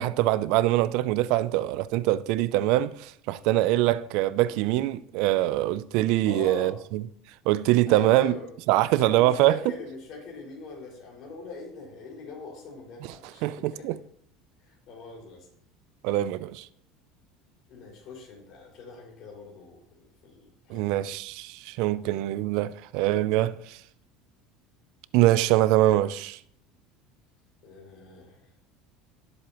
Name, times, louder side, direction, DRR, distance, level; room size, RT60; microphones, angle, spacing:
voice 1, 0.0-7.0 7.5-8.3 8.7-9.6 13.0-13.1 13.4-14.0 16.0-16.7 20.7-23.8 25.1-26.4, right 15 dB, 65° right, 0.4 m, -24 dB
voice 2, 6.2-6.7 7.9-8.5 9.0-13.9 14.9-15.5 17.7-21.0 27.6-28.4, left 3 dB, 45° left, 5.4 m, -42 dB
18.0 x 7.9 x 3.0 m
cardioid pair, 160°, 0 cm